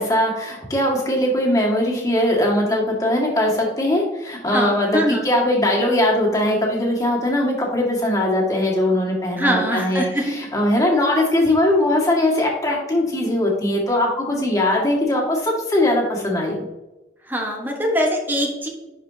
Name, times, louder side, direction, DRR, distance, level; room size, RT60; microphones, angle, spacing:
voice 1, 0.0-16.6, left 1 dB, 20° left, -3 dB, 1.9 m, -20 dB
voice 2, 4.5-5.3 9.4-10.3 17.3-18.7, equal, 10° right, 1 dB, 1.3 m, -22 dB
10.5 x 4.9 x 2.8 m, 1.0 s
head